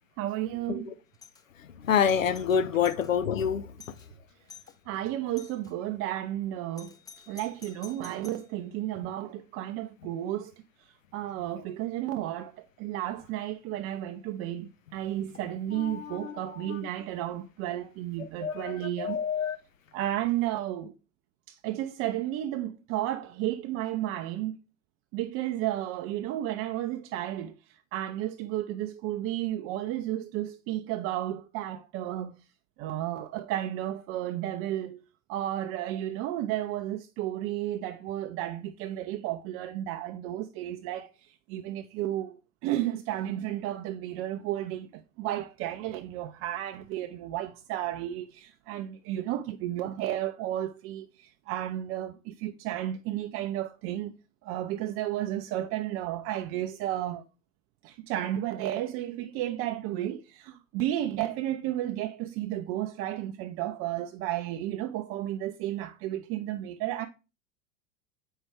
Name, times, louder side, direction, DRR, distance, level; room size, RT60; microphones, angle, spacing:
voice 1, 0.2-0.9 4.9-7.0 7.3-10.5 10.8-19.2 19.9-20.9 21.5-24.5 25.1-32.3 32.8-35.0 35.3-42.4 42.6-54.1 54.4-57.2 57.8-67.1, right 13 dB, 35° right, 0.5 m, -33 dB
Doorbell, 1.1-1.4 1.9-3.1 3.5-3.6 3.8-4.1 4.5-4.8 5.4-5.7 6.8-8.5, left 6 dB, 10° left, 0.6 m, -51 dB
voice 2, 1.6-3.7 15.7-16.8 18.2-19.6, left 7 dB, 85° left, 0.5 m, -28 dB
7.8 x 5.5 x 3.3 m
figure-of-eight pair, 80°, 39 cm